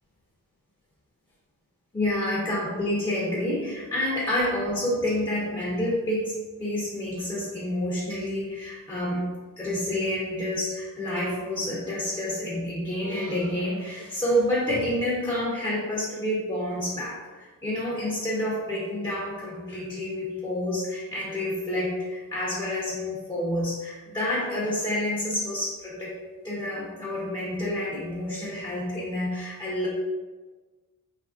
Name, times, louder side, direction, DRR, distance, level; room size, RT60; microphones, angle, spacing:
voice 1, 1.9-9.3 9.6-26.2 26.4-29.9, left 1 dB, 15° left, -8 dB, 0.6 m, -28 dB
3.1 x 2.5 x 2.4 m, 1.3 s
wide cardioid pair, 105°, 35 cm